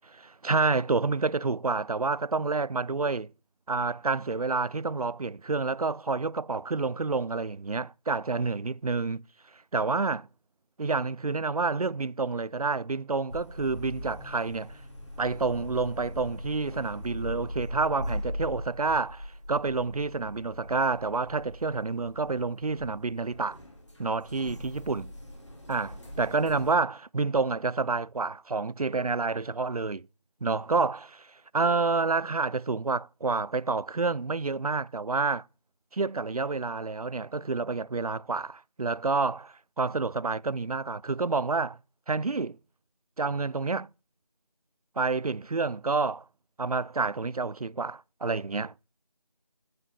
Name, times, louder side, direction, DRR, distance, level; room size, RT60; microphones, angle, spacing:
voice 1, 0.1-3.3 3.7-9.2 9.7-10.3 10.8-14.8 15.2-23.6 24.0-25.1 25.7-30.1 30.4-35.5 35.9-41.8 42.1-42.6 43.2-43.9 45.0-46.2 46.6-48.7, right 4 dB, 70° right, 0.5 m, -29 dB
sound 1, 13.3-26.7, left 1 dB, 45° left, 2.8 m, -40 dB
8.2 x 7.8 x 7.0 m
figure-of-eight pair, 180°, 20 cm